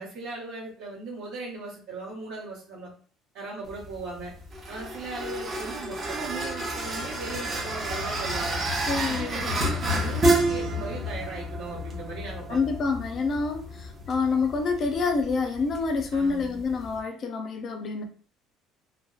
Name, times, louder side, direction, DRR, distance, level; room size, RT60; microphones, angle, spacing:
voice 1, 0.0-2.9 3.3-4.3 4.7-8.6 9.0-12.6 16.1-16.6, right 3 dB, 70° right, -6 dB, 1.1 m, -38 dB
sound 1, 3.6-17.0, right 1 dB, 25° right, 0.6 m, -30 dB
voice 2, 8.9-9.7 12.5-18.0, left 4 dB, 35° left, 5 dB, 0.4 m, -27 dB
2.6 x 2.1 x 2.4 m, 0.42 s
cardioid pair, 160°, 0 cm